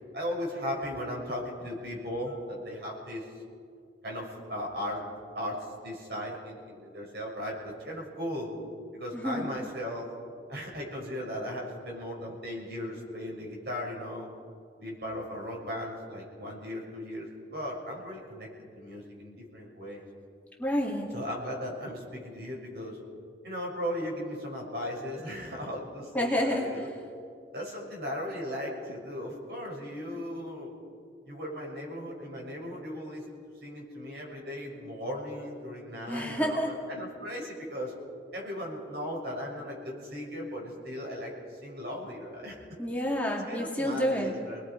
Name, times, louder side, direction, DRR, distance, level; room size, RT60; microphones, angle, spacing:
voice 1, 0.1-3.3 4.0-5.0 5.3-8.5 8.9-10.1 10.5-14.3 14.8-18.5 18.7-20.0 21.1-23.0 23.4-26.9 27.5-30.8 31.2-33.4 33.6-37.9 38.3-42.5 43.5-44.6, equal, 65° right, -2 dB, 6.6 m, -37 dB
voice 2, 9.1-9.4 20.6-21.1 26.1-26.7 36.1-36.7 42.8-44.3, equal, 10° left, -2 dB, 2.2 m, -29 dB
30.0 x 21.0 x 5.1 m, 2.2 s
head